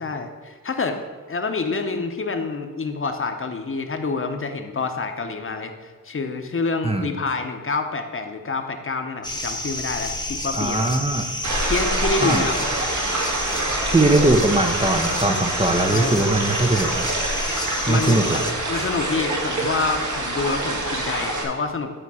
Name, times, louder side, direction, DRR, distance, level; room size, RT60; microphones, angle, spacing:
voice 1, 0.0-1.0 1.3-10.9 11.6-12.6 15.9-16.2 17.9-18.2 18.7-21.9, left 4 dB, 40° left, 5 dB, 0.9 m, -27 dB
sound 1, 9.2-18.5, left 1 dB, 15° left, 0.9 m, -30 dB
voice 2, 10.5-11.3 12.2-12.5 13.9-17.0 17.9-18.4 18.7-19.1, right 2 dB, 20° right, 5 dB, 0.6 m, -21 dB
sound 2, 11.4-21.4, right 2 dB, 65° right, 2.2 m, -26 dB
11.0 x 4.6 x 6.1 m, 1.5 s
wide cardioid pair, 145°, 32 cm